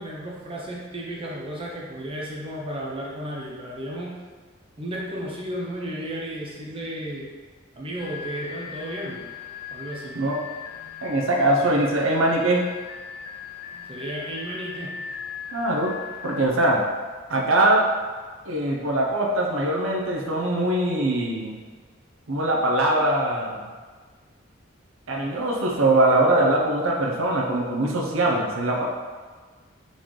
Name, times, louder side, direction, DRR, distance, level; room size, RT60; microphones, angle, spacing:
voice 1, 0.0-4.2 4.8-7.3 7.8-9.2 9.7-10.2 13.9-15.0, right 1 dB, 25° right, -3 dB, 0.7 m, -33 dB
sound 1, 8.0-16.5, left 7 dB, 45° left, 0.3 m, -39 dB
voice 2, 11.0-12.7 15.5-15.9 16.2-16.9 17.3-17.9 18.5-21.6 22.3-23.7 25.1-28.9, right 1 dB, 75° right, -1 dB, 0.7 m, -22 dB
4.0 x 3.7 x 3.1 m, 1.5 s
head